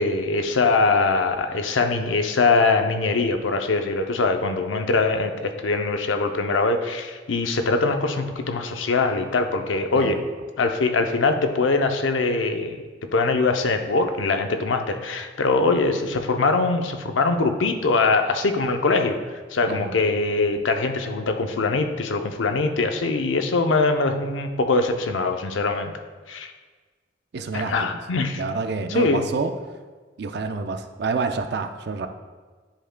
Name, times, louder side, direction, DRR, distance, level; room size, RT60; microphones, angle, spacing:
voice 1, 0.0-10.2 10.6-12.8 13.1-19.2 19.5-25.9 26.3-26.5 27.5-28.4 28.9-29.3, left 3 dB, 85° left, 6 dB, 0.6 m, -22 dB
voice 2, 27.3-28.0 28.4-29.5 30.2-32.1, right 4 dB, 60° right, 7 dB, 0.5 m, -28 dB
10.5 x 5.0 x 2.2 m, 1.4 s
head